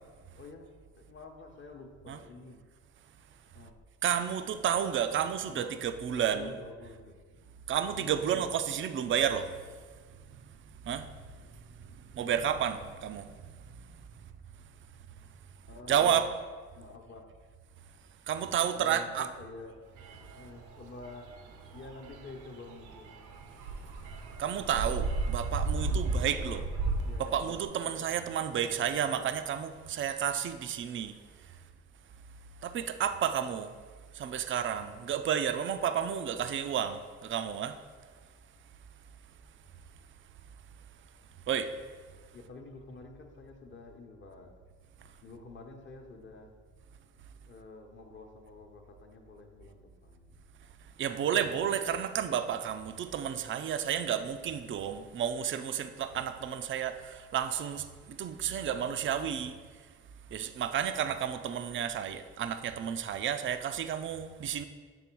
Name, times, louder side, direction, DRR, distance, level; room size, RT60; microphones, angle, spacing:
voice 1, 1.0-2.6 3.5-3.7 5.5-5.8 6.3-7.4 8.0-8.5 15.7-16.3 16.7-17.3 18.7-19.8 20.4-21.3 21.7-23.3 25.8-26.6 27.0-29.2 42.3-44.5 45.2-46.5 47.5-50.3, left 3 dB, 40° left, 3 dB, 1.0 m, -48 dB
voice 2, 4.0-6.5 7.7-9.5 10.9-11.0 12.2-13.3 15.9-16.3 18.3-19.3 24.4-26.6 27.2-31.1 32.6-33.7 34.2-37.7 41.5-41.7 51.0-59.6 60.3-64.7, right 9 dB, 40° right, 9 dB, 0.4 m, -31 dB
sound 1, 20.0-27.6, right 3 dB, 80° right, 0.8 m, -34 dB
7.0 x 3.3 x 4.6 m, 1.5 s
cardioid pair, 90°, 30 cm